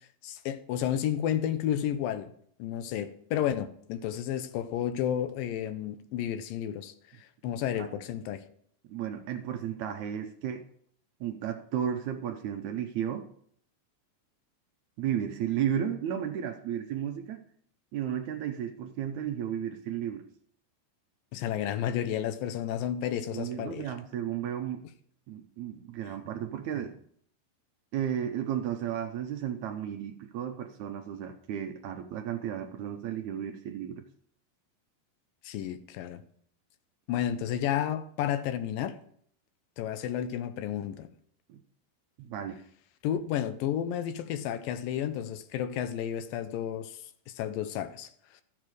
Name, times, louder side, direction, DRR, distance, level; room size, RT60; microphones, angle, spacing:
voice 1, 0.2-2.3 2.6-8.4 21.3-23.9 35.4-36.2 37.1-39.0 39.8-41.1 43.0-47.0 47.3-48.1 48.3-48.4, left 10 dB, 80° left, 2.4 m, -32 dB
voice 2, 8.8-10.6 11.2-13.3 15.0-17.4 17.9-20.2 23.3-24.8 25.3-26.9 27.9-34.1 41.5-41.6 42.2-42.6, right 9 dB, 75° right, 1.7 m, -33 dB
13.0 x 7.6 x 4.8 m
omnidirectional pair, 4.1 m